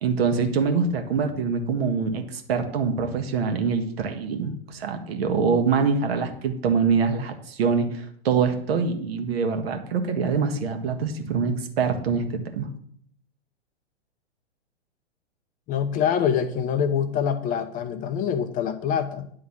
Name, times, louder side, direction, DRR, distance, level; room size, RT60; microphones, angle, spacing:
voice 1, 0.0-12.7, right 5 dB, 60° right, 6 dB, 1.6 m, -24 dB
voice 2, 15.7-19.3, left 8 dB, 25° left, 9 dB, 0.6 m, -25 dB
10.0 x 3.8 x 7.2 m, 0.62 s
hypercardioid pair, 110°, 34 cm